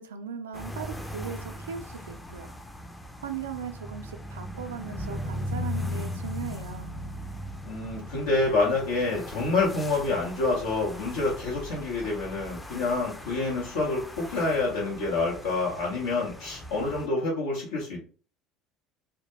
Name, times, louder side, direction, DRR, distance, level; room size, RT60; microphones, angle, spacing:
voice 1, 0.0-2.5 3.2-6.9, right 7 dB, 85° right, 0.3 m, -38 dB
sound 1, 0.5-17.1, left 1 dB, 10° left, 0.4 m, -38 dB
voice 2, 7.6-18.0, left 3 dB, 80° left, 0.7 m, -27 dB
2.2 x 2.1 x 2.9 m
hypercardioid pair, 70°, 0 cm